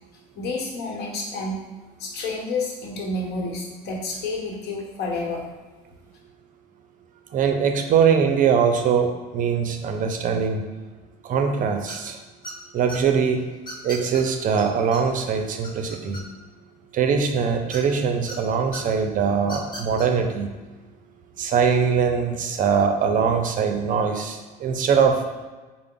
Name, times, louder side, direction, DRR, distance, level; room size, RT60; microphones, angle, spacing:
voice 1, 0.4-1.6 2.0-5.4, left 2 dB, 75° left, -1 dB, 0.9 m, -29 dB
voice 2, 7.3-10.6 11.2-12.2 12.7-13.4 13.8-16.2 16.9-20.5 21.4-25.2, right 6 dB, 50° right, 5 dB, 0.5 m, -22 dB
sound 1, 11.9-12.1 12.4-13.0 13.7-14.2 14.6-14.7 14.9-15.0 15.4-16.5 17.7-18.4 18.7-18.8 19.4-20.1, right 1 dB, 25° left, 1.1 m, -37 dB
4.6 x 2.0 x 3.7 m, 1.2 s
cardioid pair, 110°, 17 cm